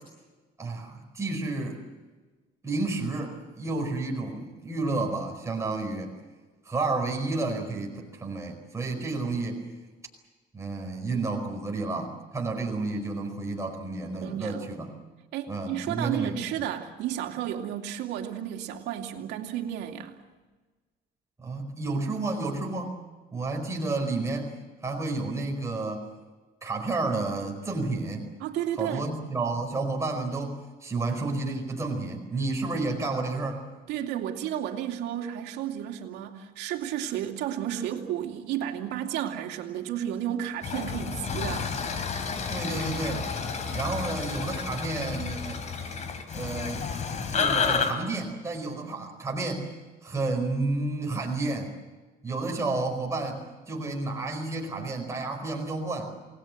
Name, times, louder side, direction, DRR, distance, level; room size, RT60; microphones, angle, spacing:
voice 1, 0.6-1.8 2.6-6.1 6.6-9.6 10.5-14.9 15.5-16.4 21.4-23.0 23.3-24.5 24.8-26.1 26.6-28.3 28.8-33.7 42.5-43.3 43.7-45.6 46.3-46.8 47.3-49.7 50.0-51.7 52.2-53.4 53.7-56.1, right 3 dB, 15° right, 1 dB, 4.8 m, -31 dB
voice 2, 14.2-14.7 15.3-20.2 28.4-29.1 33.9-41.7, right 10 dB, 90° right, 3 dB, 2.6 m, -32 dB
sound 1, 40.6-47.9, left 5 dB, 45° left, 3.5 m, -30 dB
28.5 x 19.5 x 7.8 m, 1.3 s
cardioid pair, 110°, 17 cm